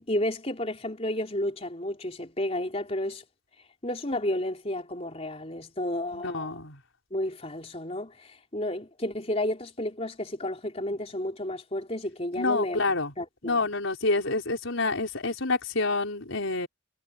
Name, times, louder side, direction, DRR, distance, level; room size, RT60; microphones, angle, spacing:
voice 1, 0.0-3.2 3.8-6.6 7.1-13.7, left 1 dB, 30° left, 3.7 m, -32 dB
voice 2, 6.1-6.8 12.4-13.1 13.4-16.7, left 3 dB, 75° left, 4.5 m, -28 dB
head